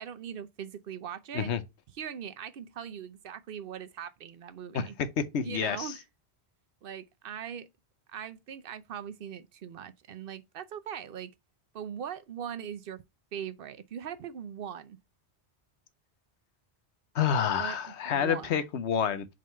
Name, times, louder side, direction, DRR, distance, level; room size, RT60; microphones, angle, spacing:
voice 1, 0.0-1.5 2.0-4.9 5.4-6.0 6.8-7.7 8.1-11.3 11.7-13.0 13.3-15.0 17.5-18.6, right 8 dB, 60° right, 0.8 m, -40 dB
voice 2, 4.7-5.9 17.1-19.3, left 7 dB, 90° left, 1.0 m, -29 dB
5.1 x 3.9 x 5.4 m
omnidirectional pair, 1.1 m